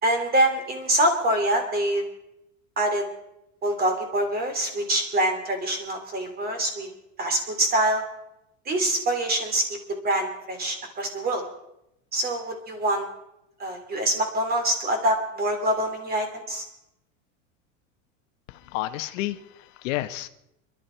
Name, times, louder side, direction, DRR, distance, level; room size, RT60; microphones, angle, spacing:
voice 1, 0.0-2.0 2.8-3.0 3.6-6.9 7.2-8.0 8.7-9.6 10.0-11.4 12.1-13.1 13.6-16.6, right 1 dB, 25° right, 6 dB, 3.0 m, -25 dB
voice 2, 18.5-20.3, left 16 dB, 75° left, 9 dB, 1.2 m, -31 dB
27.5 x 12.0 x 4.5 m, 0.84 s
supercardioid pair, 160°, 38 cm